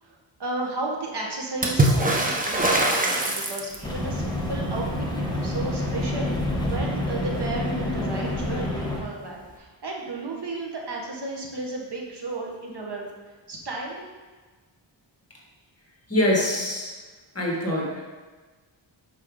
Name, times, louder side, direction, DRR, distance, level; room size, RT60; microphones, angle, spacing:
voice 1, 0.0-14.0, right 2 dB, 55° right, -1 dB, 1.5 m, -34 dB
Water / Splash splatter, 1.6-4.0 7.3-7.4 7.6-8.4 9.5-9.6, right 1 dB, 15° right, 0.9 m, -23 dB
sound 1, 3.8-9.0, left 1 dB, 10° left, 1.1 m, -28 dB
voice 2, 16.1-16.9 17.3-18.0, left 1 dB, 30° left, -2 dB, 1.7 m, -24 dB
8.6 x 5.9 x 3.9 m, 1.4 s
wide cardioid pair, 145°, 48 cm